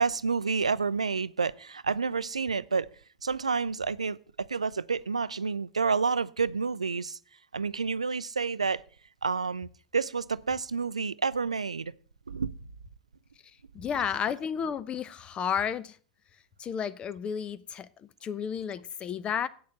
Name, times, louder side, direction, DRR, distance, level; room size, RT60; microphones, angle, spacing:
voice 1, 0.0-2.9 3.2-7.2 7.5-8.8 9.2-11.9 12.3-12.5, right 5 dB, 85° right, 0.4 m, -29 dB
voice 2, 13.7-16.0 16.6-19.5, left 7 dB, 30° left, 0.8 m, -32 dB
8.5 x 6.7 x 7.9 m
figure-of-eight pair, 80°, 3 cm